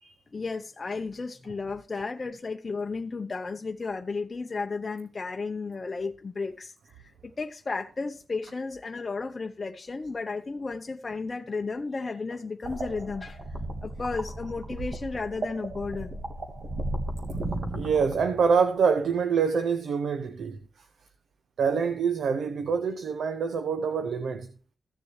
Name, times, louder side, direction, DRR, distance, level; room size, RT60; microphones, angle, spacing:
voice 1, 0.3-13.4 13.8-16.2, left 4 dB, 40° left, 0.7 m, -33 dB
sound 1, 12.6-18.7, right 1 dB, 55° right, 1.6 m, -35 dB
voice 2, 17.7-20.6 21.6-24.5, right 6 dB, 85° right, 0.8 m, -25 dB
15.0 x 6.8 x 3.2 m
cardioid pair, 75°, 0 cm